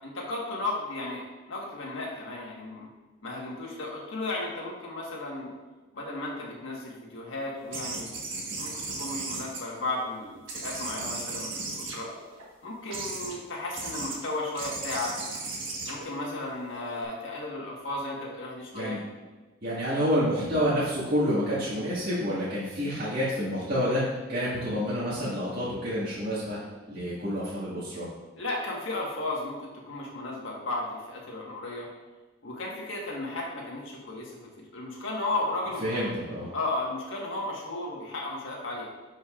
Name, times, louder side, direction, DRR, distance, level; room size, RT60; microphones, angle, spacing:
voice 1, 0.0-2.9 3.2-5.5 5.9-8.1 8.6-12.1 12.6-15.1 15.9-19.0 28.4-31.9 32.4-36.1 36.5-38.9, left 2 dB, 75° left, -2 dB, 1.6 m, -34 dB
sound 1, 7.7-10.1 10.5-12.4 12.9-13.3 13.7-14.2 14.5-17.0, right 3 dB, 70° right, 1.5 m, -36 dB
voice 2, 19.6-26.6 26.9-28.1 35.8-36.5, equal, 50° right, -10 dB, 1.9 m, -28 dB
10.5 x 5.4 x 2.5 m, 1.2 s
head